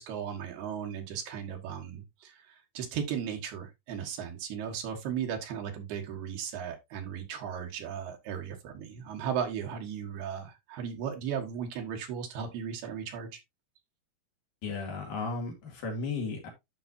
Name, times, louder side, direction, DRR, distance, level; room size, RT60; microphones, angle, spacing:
voice 1, 0.0-13.3, right 8 dB, 65° right, 3.0 m, -36 dB
voice 2, 14.6-16.5, left 4 dB, 50° left, 3.4 m, -34 dB
13.0 x 5.3 x 2.6 m
omnidirectional pair, 5.8 m